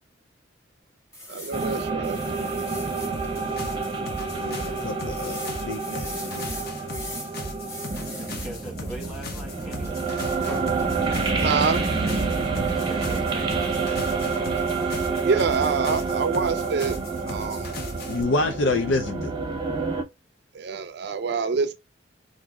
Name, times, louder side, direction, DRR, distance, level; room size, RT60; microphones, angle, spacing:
sound 1, 1.1-3.1 3.7-3.8 4.1-4.2 5.2-7.3 7.6-8.5 10.5-10.7, left 1 dB, 15° left, 2.4 m, -40 dB
voice 1, 1.3-2.2 11.4-11.9 15.2-17.0 17.3-17.7 20.5-21.7, right 5 dB, 65° right, 0.4 m, -26 dB
sound 2, 1.5-20.0, right 4 dB, 25° right, 0.7 m, -28 dB
sound 3, 3.1-18.2, left 2 dB, 60° left, 0.9 m, -38 dB
voice 2, 4.3-6.5 18.1-19.4, left 2 dB, 85° left, 0.4 m, -27 dB
voice 3, 8.1-10.3 12.6-14.4, right 1 dB, ahead, 1.1 m, -41 dB
4.6 x 2.5 x 2.2 m
head